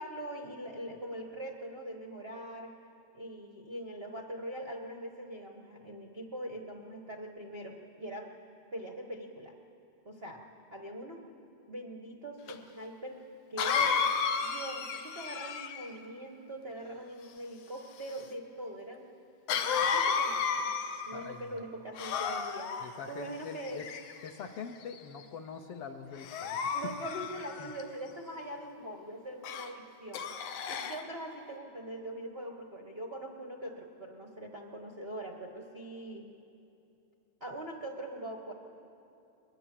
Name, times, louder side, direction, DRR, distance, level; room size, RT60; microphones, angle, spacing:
voice 1, 0.0-2.7 3.1-8.3 8.7-9.5 10.0-10.4 10.7-11.2 11.7-13.2 13.5-13.9 14.4-19.1 19.6-20.7 21.1-23.8 26.7-30.3 30.7-36.3 37.4-38.5, right 1 dB, 70° right, 2 dB, 0.5 m, -42 dB
Cough, 12.5-12.6 13.6-16.0 19.5-21.3 22.0-22.8 23.6-24.3 24.9-25.2 26.2-27.8 29.4-29.7 30.1-31.0, left 6 dB, 85° left, 2.5 m, -32 dB
voice 2, 21.1-21.7 22.8-23.8 24.2-26.9 27.6-27.7, left 6 dB, 70° left, 5 dB, 1.5 m, -44 dB
22.0 x 21.0 x 7.6 m, 2.7 s
omnidirectional pair, 3.4 m